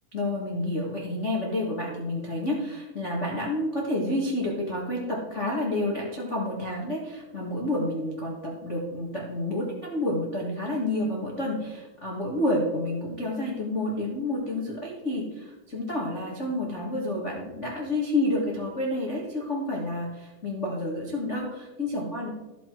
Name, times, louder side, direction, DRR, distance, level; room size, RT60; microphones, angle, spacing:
voice 1, 0.1-22.3, left 1 dB, 80° left, -4 dB, 0.6 m, -29 dB
14.0 x 6.9 x 4.6 m, 1.1 s
omnidirectional pair, 4.7 m